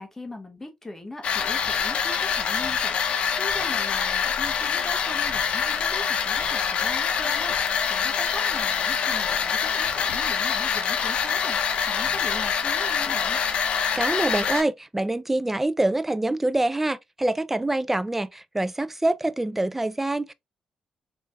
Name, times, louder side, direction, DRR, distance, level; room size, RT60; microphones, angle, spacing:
voice 1, 0.0-13.4, left 1 dB, 20° left, 0.8 m, -40 dB
sound 1, 1.2-14.6, left 7 dB, 70° left, 0.6 m, -25 dB
voice 2, 14.0-20.3, right 2 dB, 10° right, 0.3 m, -25 dB
3.2 x 3.2 x 2.4 m
cardioid pair, 90°, 2 cm